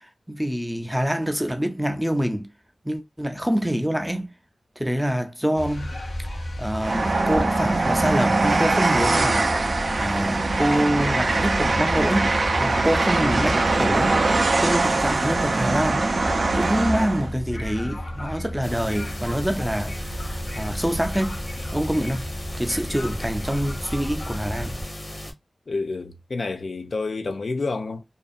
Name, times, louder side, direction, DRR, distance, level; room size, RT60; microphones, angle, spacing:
voice 1, 0.3-2.5 2.8-4.3 4.8-5.9 6.6-9.5 10.0-14.1 14.6-16.1 16.6-21.4 21.7-22.3 22.6-24.8, equal, 5° right, 0.4 m, -26 dB
sound 1, 5.5-24.8, equal, 90° left, 0.9 m, -33 dB
Train, 6.8-17.3, right 3 dB, 65° right, 0.4 m, -22 dB
sound 2, 18.6-25.3, left 1 dB, 30° left, 0.9 m, -37 dB
voice 2, 25.7-28.0, left 3 dB, 70° left, 0.4 m, -29 dB
2.6 x 2.4 x 2.4 m
wide cardioid pair, 75°, 0 cm